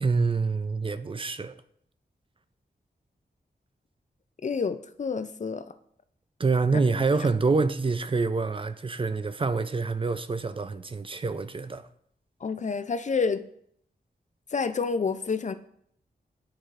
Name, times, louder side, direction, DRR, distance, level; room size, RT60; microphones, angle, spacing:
voice 1, 0.0-1.6 6.4-11.8, right 4 dB, 30° right, 0.4 m, -26 dB
voice 2, 4.4-5.6 6.7-6.8 12.4-13.4 14.5-15.5, left 5 dB, 45° left, 0.4 m, -28 dB
10.0 x 4.7 x 2.5 m
wide cardioid pair, 75°, 17 cm